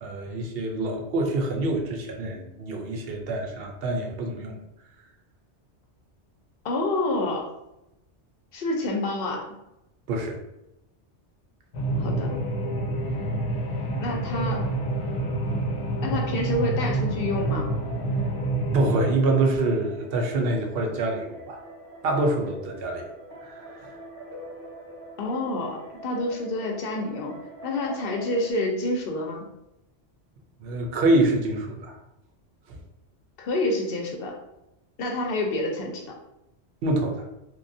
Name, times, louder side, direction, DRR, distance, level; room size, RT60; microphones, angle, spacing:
voice 1, 0.0-4.6 10.1-10.4 18.7-21.6 22.0-23.1 23.4-23.6 30.6-32.0 32.7-32.8 36.8-37.3, right 2 dB, 65° right, 3 dB, 0.7 m, -26 dB
voice 2, 6.6-7.5 8.5-9.5 12.0-12.4 14.0-14.7 16.0-17.7 25.2-27.4 27.6-29.5 33.4-34.4 35.0-36.1, left 2 dB, 60° left, 1 dB, 0.7 m, -28 dB
sound 1, 11.7-19.1, right 2 dB, 80° left, 0.9 m, -28 dB
sound 2, 12.1-28.5, equal, 5° left, 0.9 m, -44 dB
3.0 x 2.2 x 2.6 m, 0.89 s
omnidirectional pair, 1.2 m